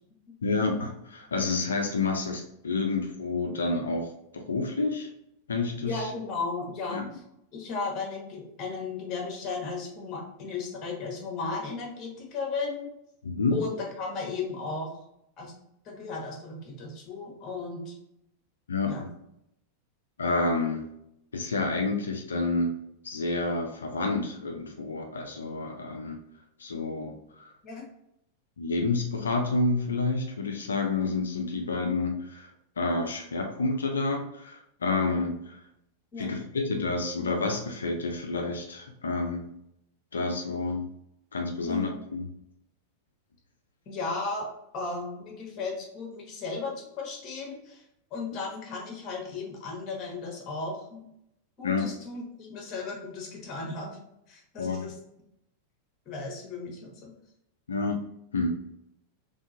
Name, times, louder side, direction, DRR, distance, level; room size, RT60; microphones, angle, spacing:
voice 1, 0.4-5.1 5.5-6.1 6.9-7.1 13.2-13.6 18.7-18.9 20.2-20.9 21.3-22.8 23.0-26.2 26.6-27.5 28.6-32.5 32.8-35.6 36.2-39.5 40.1-40.9 41.3-42.3 51.6-51.8 54.6-54.9 57.7-58.0 58.3-58.6, left 3 dB, 70° left, 3 dB, 0.4 m, -29 dB
voice 2, 5.8-7.2 7.5-12.9 13.5-14.9 15.4-15.5 15.8-18.0 18.8-19.1 27.6-27.8 36.1-36.3 41.7-42.0 43.9-47.8 48.1-51.0 51.6-54.0 54.3-55.0 56.0-57.1, left 4 dB, 35° left, 0 dB, 1.2 m, -35 dB
3.5 x 3.3 x 2.6 m, 0.80 s
figure-of-eight pair, 90°, 0 cm